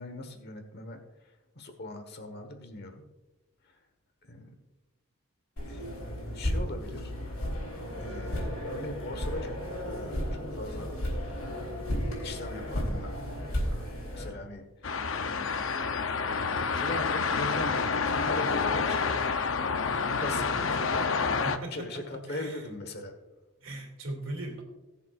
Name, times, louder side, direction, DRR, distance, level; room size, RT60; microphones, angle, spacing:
voice 1, 0.0-3.0 3.6-3.8 4.2-4.6 5.7-7.1 7.5-7.7 8.0-9.6 9.8-10.9 11.4-11.9 12.2-13.2 14.1-16.0 16.7-19.3 19.8-21.4 21.7-23.1, left 2 dB, 50° left, 6 dB, 1.3 m, -41 dB
sound 1, 5.6-14.3, equal, 85° left, 4.1 m, -34 dB
sound 2, 14.8-21.6, left 5 dB, 65° left, 0.6 m, -28 dB
voice 2, 21.4-22.7 23.6-24.6, right 1 dB, 65° right, 2 dB, 2.3 m, -39 dB
20.5 x 7.2 x 2.4 m, 1.1 s
head